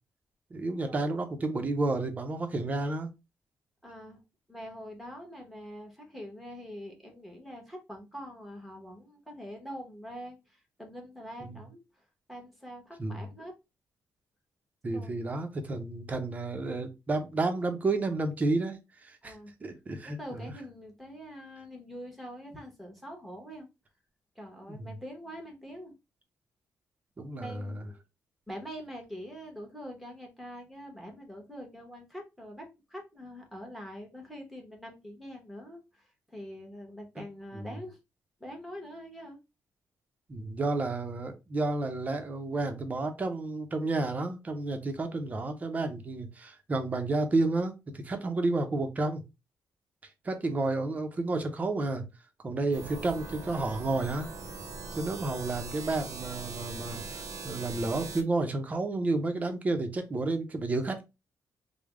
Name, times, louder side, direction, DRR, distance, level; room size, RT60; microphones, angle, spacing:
voice 1, 0.5-3.1 11.4-11.6 13.0-13.2 14.8-19.4 19.6-20.2 24.7-24.8 27.2-27.7 37.5-37.7 40.3-49.2 50.2-52.0 52.4-54.3 54.9-61.0, right 2 dB, 25° right, 0.5 m, -31 dB
voice 2, 3.8-4.2 4.5-13.5 14.9-15.2 19.2-19.5 20.0-23.7 24.3-25.9 27.4-28.0 28.5-38.0 38.4-39.4, equal, ahead, 0.9 m, -44 dB
sound 1, 52.7-58.2, right 4 dB, 90° right, 0.7 m, -41 dB
3.3 x 2.0 x 3.5 m
wide cardioid pair, 160°, 6 cm